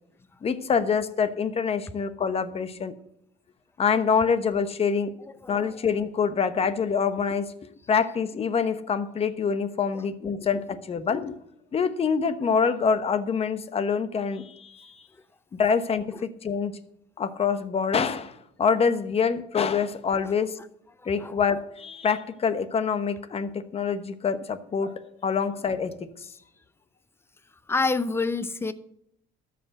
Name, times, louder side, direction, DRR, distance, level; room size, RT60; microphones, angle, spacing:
voice 1, 0.4-2.9 3.8-5.1 5.5-7.5 7.9-11.4 11.7-15.0 15.5-16.8 17.2-20.5 21.1-26.1, left 6 dB, 35° left, 11 dB, 1.0 m, -26 dB
voice 2, 5.2-5.8 9.9-10.0 16.1-16.2 20.2-20.4 21.0-21.4 27.7-28.7, left 3 dB, 15° left, 13 dB, 0.7 m, -29 dB
13.0 x 5.1 x 7.8 m, 0.75 s
cardioid pair, 110°, 17 cm